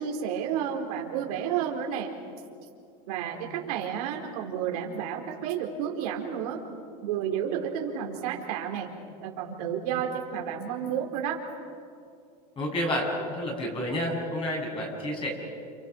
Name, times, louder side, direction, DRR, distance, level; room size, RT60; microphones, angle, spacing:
voice 1, 0.0-2.1 3.1-6.6 7.0-8.9 9.2-11.4, right 8 dB, 75° right, 2 dB, 4.2 m, -31 dB
voice 2, 12.6-15.3, left 1 dB, 25° left, -1 dB, 7.4 m, -30 dB
29.5 x 28.5 x 6.2 m, 2.4 s
supercardioid pair, 135°, 20 cm